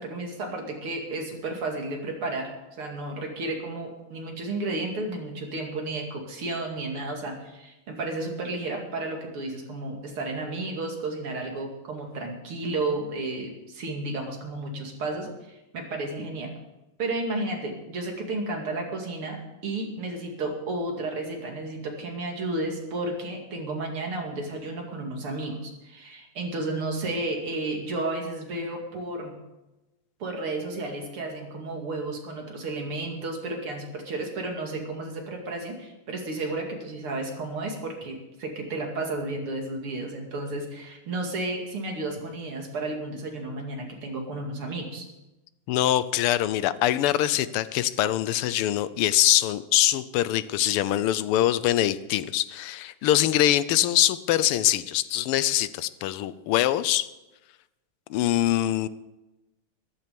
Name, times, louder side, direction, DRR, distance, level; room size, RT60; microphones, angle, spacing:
voice 1, 0.0-16.6 17.0-29.4 30.2-45.0, right 2 dB, 80° right, 1 dB, 3.3 m, -32 dB
voice 2, 45.7-57.1 58.1-58.9, left 13 dB, 85° left, 16 dB, 1.6 m, -23 dB
14.0 x 12.5 x 5.2 m, 1.0 s
omnidirectional pair, 2.4 m